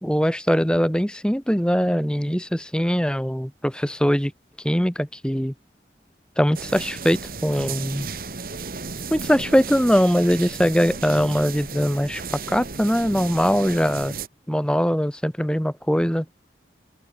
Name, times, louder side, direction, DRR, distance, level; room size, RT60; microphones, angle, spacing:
voice 1, 0.0-4.3 4.6-5.5 6.4-8.1 9.1-14.2 14.5-16.3, equal, 5° left, 2.6 m, -21 dB
sound 1, 6.5-14.3, right 4 dB, 55° right, 1.9 m, -34 dB
open air
head